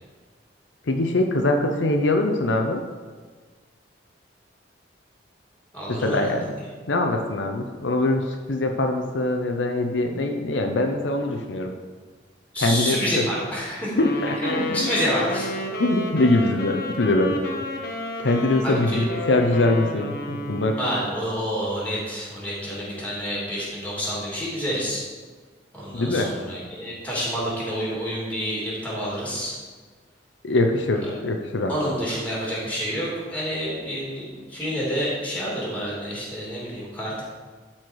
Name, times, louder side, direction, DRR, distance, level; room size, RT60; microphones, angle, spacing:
voice 1, 0.9-2.8 5.9-6.4 6.9-11.8 12.6-13.3 14.0-14.9 15.8-17.4 18.2-20.8 25.9-26.3 30.4-31.9, left 2 dB, 75° left, 4 dB, 0.7 m, -23 dB
voice 2, 5.7-6.3 12.5-13.9 14.4-15.5 18.6-19.0 20.8-25.0 25.7-29.6 31.7-37.2, equal, 10° left, -6 dB, 2.8 m, -28 dB
Wind instrument woodwind instrument, 13.9-21.2, left 1 dB, 55° left, 1.0 m, -31 dB
12.5 x 4.4 x 4.6 m, 1.5 s
head